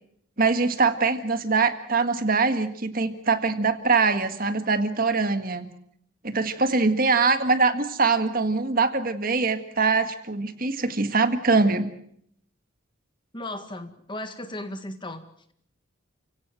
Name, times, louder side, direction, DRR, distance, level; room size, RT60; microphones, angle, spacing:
voice 1, 0.4-5.7 6.2-11.9, right 4 dB, 45° right, 8 dB, 1.8 m, -23 dB
voice 2, 13.3-15.2, left 1 dB, 25° left, 8 dB, 1.9 m, -35 dB
30.0 x 17.0 x 7.7 m, 0.69 s
head